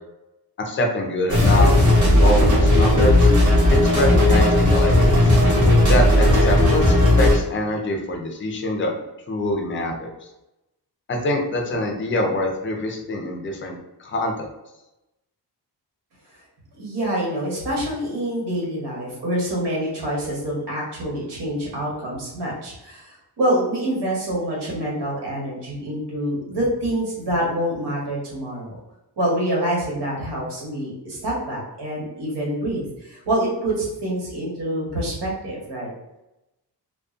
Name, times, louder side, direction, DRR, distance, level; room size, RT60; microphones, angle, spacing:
voice 1, 0.6-3.3 3.7-5.3 5.8-8.9 9.3-10.1 11.1-14.5, left 1 dB, 30° left, 1 dB, 0.4 m, -25 dB
sound 1, 1.3-7.4, left 1 dB, 45° right, 0.8 m, -15 dB
voice 2, 16.7-28.8 29.2-35.9, right 1 dB, 85° right, -4 dB, 1.1 m, -26 dB
2.4 x 2.2 x 2.4 m, 0.93 s
wide cardioid pair, 170°, 40 cm